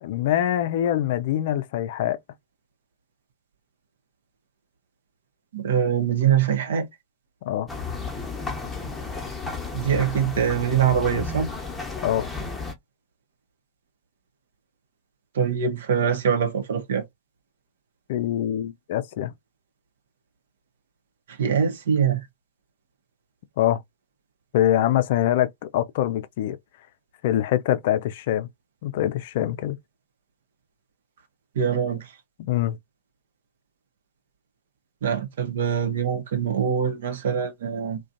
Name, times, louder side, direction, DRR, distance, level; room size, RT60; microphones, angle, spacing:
voice 1, 0.0-2.2 7.4-7.7 12.0-12.3 18.1-19.3 23.6-23.8 24.5-26.6 27.2-28.5 28.8-29.8 32.4-32.8, left 12 dB, 60° left, 0.4 m, -24 dB
voice 2, 5.5-6.9 9.7-11.5 15.4-17.0 21.4-22.2 31.6-32.0 35.0-38.0, right 7 dB, 65° right, 0.7 m, -23 dB
sound 1, 7.7-12.7, left 4 dB, 10° left, 0.9 m, -33 dB
2.4 x 2.2 x 2.5 m
figure-of-eight pair, 95°, 0 cm